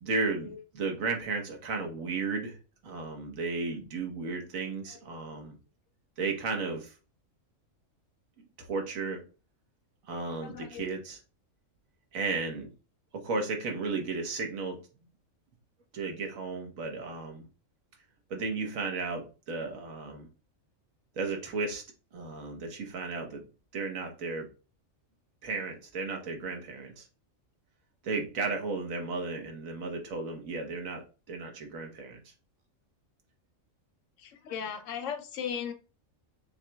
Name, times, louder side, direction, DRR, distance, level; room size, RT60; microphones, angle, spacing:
voice 1, 0.0-2.6 2.8-5.6 6.2-6.9 8.6-9.2 10.1-11.2 12.1-12.7 13.1-14.8 15.9-17.5 18.3-20.3 21.2-21.8 22.1-23.4 23.7-24.5 25.4-27.0 28.0-32.2, right 4 dB, 85° right, 3 dB, 1.4 m, -34 dB
voice 2, 4.6-5.0 10.1-10.9 34.2-35.7, left 7 dB, 75° left, 7 dB, 0.9 m, -38 dB
6.4 x 2.9 x 2.2 m, 0.35 s
omnidirectional pair, 1.4 m